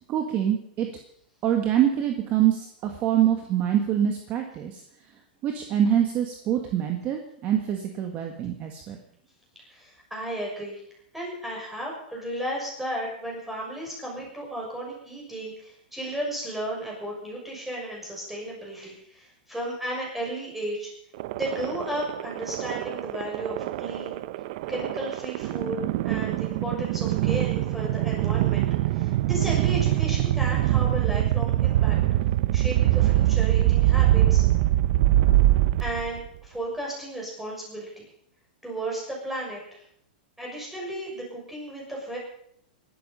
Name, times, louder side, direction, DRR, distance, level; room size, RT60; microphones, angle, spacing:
voice 1, 0.1-0.9 1.4-4.8 5.4-9.0, right 10 dB, 30° right, 4 dB, 1.7 m, -25 dB
voice 2, 9.7-10.8 11.1-20.9 21.3-24.2 24.7-32.0 32.5-34.4 35.8-38.1 38.6-39.8 40.4-42.2, right 1 dB, 5° right, -3 dB, 6.7 m, -34 dB
sound 1, 21.2-36.3, right 14 dB, 50° right, 0.7 m, -23 dB
20.0 x 12.5 x 5.6 m, 0.69 s
supercardioid pair, 150°, 5 cm